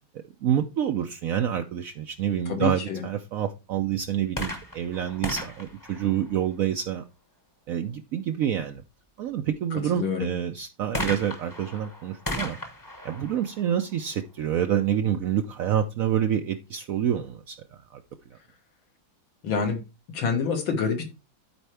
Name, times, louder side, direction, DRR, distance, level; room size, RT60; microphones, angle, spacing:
voice 1, 0.4-7.0 7.7-8.8 9.2-12.6 13.0-17.6 17.9-18.0, right 10 dB, 85° right, 6 dB, 0.7 m, -27 dB
voice 2, 2.5-3.0 9.9-10.3 19.4-19.8 20.1-21.0, left 5 dB, 80° left, 4 dB, 2.3 m, -26 dB
sound 1, 4.3-6.9 10.9-14.6 15.4-15.5, left 1 dB, 15° left, 0.8 m, -36 dB
12.0 x 4.4 x 3.3 m, 0.29 s
omnidirectional pair, 2.1 m